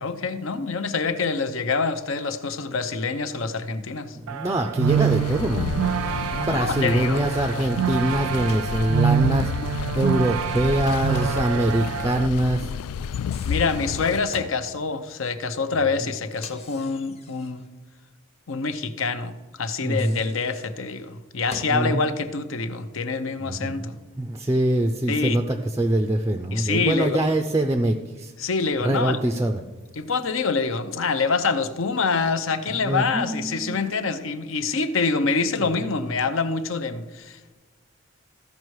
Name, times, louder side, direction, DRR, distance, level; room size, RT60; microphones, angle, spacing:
voice 1, 0.0-4.2 6.4-7.2 13.4-17.7 18.5-24.0 25.1-25.4 26.5-27.2 28.4-29.2 30.0-37.5, left 4 dB, 65° left, 10 dB, 0.7 m, -26 dB
voice 2, 4.1-5.8 6.3-12.7 19.8-20.2 21.7-22.1 23.4-23.8 24.2-28.3 28.8-29.6 32.7-33.9, right 1 dB, 15° right, 4 dB, 0.4 m, -24 dB
sound 1, 4.3-12.3, right 8 dB, 80° right, 0.3 m, -26 dB
sound 2, 4.9-14.2, left 7 dB, 90° left, 0.3 m, -31 dB
Microwave oven, 8.3-8.8 10.2-11.5 11.8-11.9 13.0-14.6 16.3-17.7 19.7-21.9, left 3 dB, 30° left, 0.9 m, -45 dB
14.5 x 5.3 x 4.7 m, 1.3 s
head